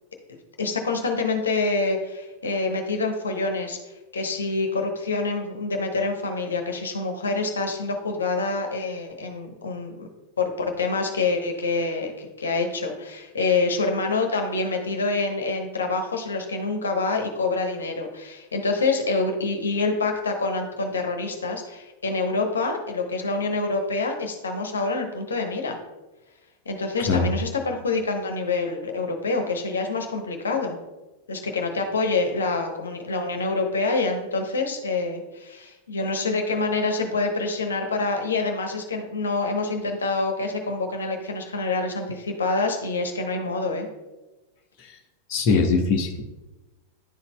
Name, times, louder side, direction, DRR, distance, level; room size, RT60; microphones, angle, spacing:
voice 1, 0.6-3.8 4.1-10.1 10.4-25.8 26.7-30.8 31.3-43.9, left 3 dB, 70° left, 3 dB, 0.9 m, -26 dB
voice 2, 45.3-46.2, left 4 dB, 40° left, 1 dB, 0.8 m, -22 dB
10.5 x 4.0 x 2.2 m, 1.1 s
figure-of-eight pair, 90°, 0 cm